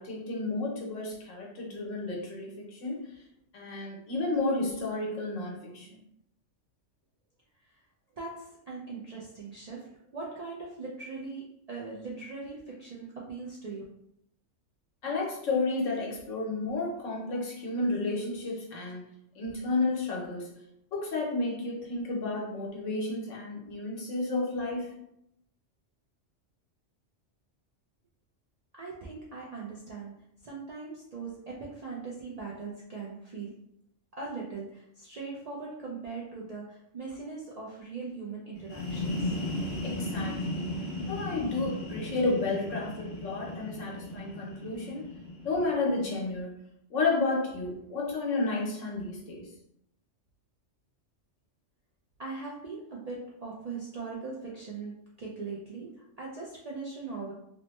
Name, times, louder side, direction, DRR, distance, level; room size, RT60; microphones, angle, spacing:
voice 1, 0.0-3.1 3.5-5.9 15.0-19.1 19.4-20.5 20.9-24.9 39.8-40.7 41.1-45.0 45.4-46.5 46.9-49.5, left 3 dB, 80° left, -2 dB, 1.2 m, -31 dB
voice 2, 8.2-13.8 28.7-33.6 34.2-39.3 52.2-57.3, right 4 dB, 55° right, -4 dB, 0.4 m, -40 dB
sound 1, 38.6-46.2, left 1 dB, 60° left, 0.9 m, -36 dB
3.1 x 2.1 x 3.0 m, 0.75 s
omnidirectional pair, 1.3 m